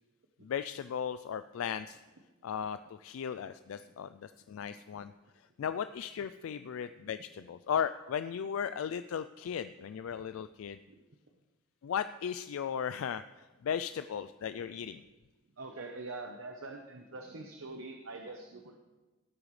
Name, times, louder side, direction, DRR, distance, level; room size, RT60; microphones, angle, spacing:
voice 1, 0.4-2.0 2.4-5.1 5.6-10.8 11.8-13.2 13.6-15.0, left 8 dB, 75° left, 12 dB, 0.3 m, -36 dB
voice 2, 3.7-4.1 4.7-4.8 5.6-5.7 10.9-11.0 15.6-18.8, right 3 dB, 70° right, 3 dB, 1.0 m, -45 dB
17.0 x 8.7 x 3.3 m, 1.2 s
head